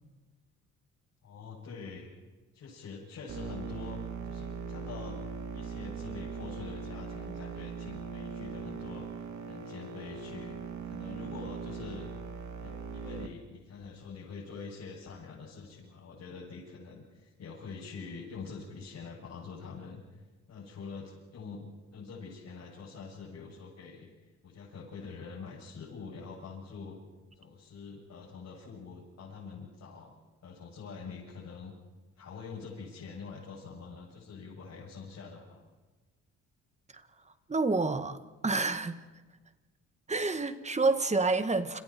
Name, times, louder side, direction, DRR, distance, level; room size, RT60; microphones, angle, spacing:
voice 1, 1.2-2.1 2.5-5.2 5.5-9.1 9.5-10.6 10.8-12.1 12.6-27.0 27.3-30.1 30.4-31.7 32.2-35.6, left 5 dB, 65° left, 8.0 m, -45 dB
sound 1, 3.3-13.3, right 5 dB, 70° right, 2.5 m, -40 dB
voice 2, 37.5-38.2 38.4-39.0 40.1-41.8, right 3 dB, 20° right, 1.9 m, -28 dB
29.5 x 27.5 x 4.6 m
cardioid pair, 90°, 30 cm